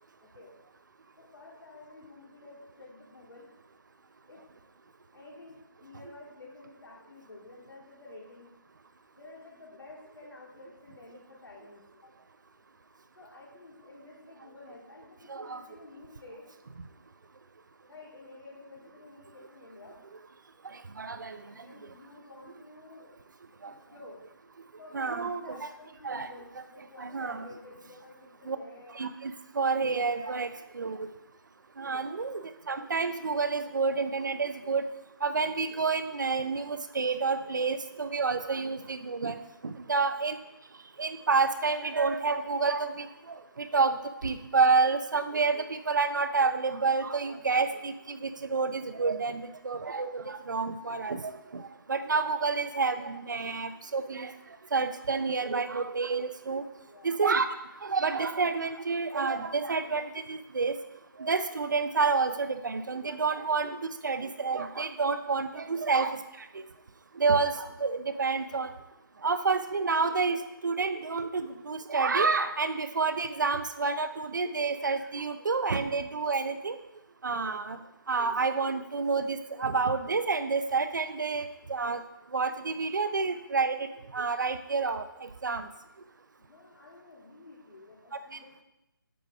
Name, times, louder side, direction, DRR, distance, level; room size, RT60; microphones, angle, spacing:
voice 1, 0.2-0.5 1.3-3.5 4.3-4.4 5.1-8.5 9.2-12.1 13.2-16.5 17.9-20.0 21.5-23.2 23.6-24.2 24.8-29.0 31.9-32.3 39.8-40.3 56.8-57.2 65.6-65.9 86.4-88.6, left 2 dB, 80° left, -2 dB, 2.8 m, -51 dB
voice 2, 15.3-15.6 21.0-21.4 23.6-23.7 24.9-25.6 26.0-26.3 27.0-27.5 28.5-28.6 28.9-31.1 31.8-34.8 35.2-39.4 39.6-40.4 41.0-43.1 43.6-54.3 54.7-56.6 57.0-57.5 57.8-60.8 61.2-63.8 64.0-66.2 66.5-66.6 67.2-68.7 69.2-70.4 70.6-76.8 77.2-77.8 78.1-82.0 82.3-83.9 84.1-85.7, right 4 dB, 55° right, 10 dB, 0.6 m, -29 dB
9.3 x 6.2 x 3.5 m, 0.92 s
hypercardioid pair, 175°, 12 cm